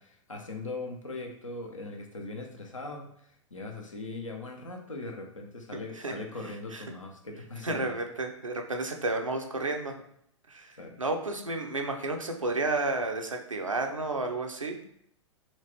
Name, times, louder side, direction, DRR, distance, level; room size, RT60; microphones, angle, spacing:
voice 1, 0.0-8.0 10.8-10.9, left 2 dB, 80° left, 2 dB, 0.8 m, -40 dB
voice 2, 7.6-9.9 10.5-14.8, right 2 dB, 90° right, 3 dB, 0.6 m, -31 dB
4.3 x 2.4 x 3.1 m, 0.70 s
figure-of-eight pair, 105°, 16 cm